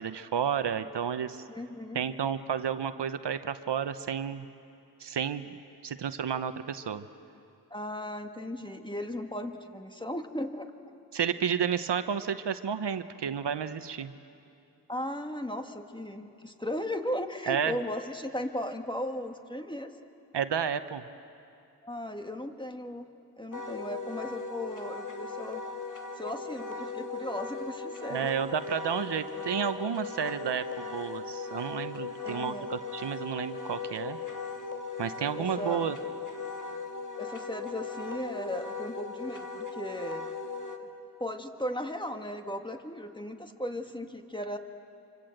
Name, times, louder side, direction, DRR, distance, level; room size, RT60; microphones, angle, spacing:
voice 1, 0.0-1.4 1.9-4.5 5.0-5.6 5.8-7.1 11.1-14.1 17.5-17.7 20.3-21.0 28.1-34.2 35.0-36.0, right 7 dB, 75° right, 11 dB, 1.0 m, -31 dB
voice 2, 1.5-2.0 7.7-10.7 14.9-19.9 21.8-23.1 23.4-25.6 26.2-28.3 32.2-32.7 35.4-35.9 37.2-40.2 40.8-40.9 41.2-44.6, left 1 dB, 10° left, 5 dB, 1.9 m, -36 dB
Wind instrument woodwind instrument, 23.5-40.8, left 4 dB, 45° left, 2.0 m, -38 dB
26.5 x 25.5 x 7.9 m, 2.6 s
cardioid pair, 50°, 42 cm